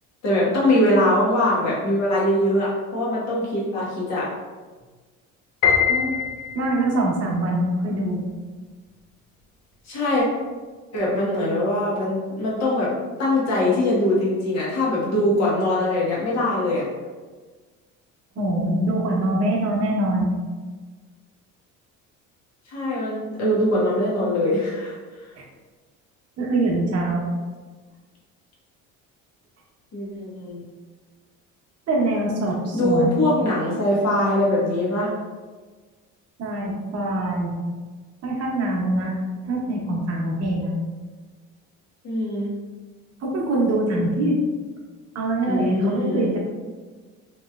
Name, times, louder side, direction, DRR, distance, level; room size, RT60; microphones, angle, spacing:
voice 1, 0.2-4.3 9.8-10.2 10.9-12.9 13.2-16.8 22.7-25.3 29.9-30.6 32.7-35.1 42.0-42.5 45.5-46.3, left 1 dB, 55° left, -6 dB, 1.3 m, -22 dB
Piano, 5.6-6.9, left 7 dB, 85° left, 0.8 m, -22 dB
voice 2, 6.5-8.2 18.4-20.3 26.4-27.2 31.9-33.3 36.4-37.5 38.2-39.1 39.5-40.7 43.2-44.4 45.1-46.4, right 1 dB, 50° right, -2 dB, 0.9 m, -23 dB
3.0 x 2.9 x 2.4 m, 1.4 s
cardioid pair, 105°, 32 cm